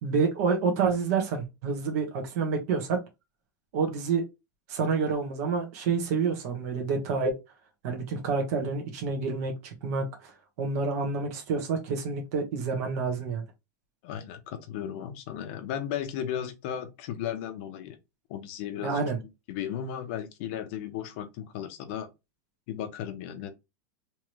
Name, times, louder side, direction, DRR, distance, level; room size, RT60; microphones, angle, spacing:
voice 1, 0.0-3.0 3.7-4.2 4.7-7.3 7.8-10.3 10.6-13.4 18.8-19.2, right 5 dB, 50° right, 1.4 m, -28 dB
voice 2, 14.0-18.0 18.3-22.1 22.7-23.5, left 9 dB, 40° left, 0.8 m, -35 dB
3.6 x 3.1 x 3.1 m
supercardioid pair, 175°, 10 cm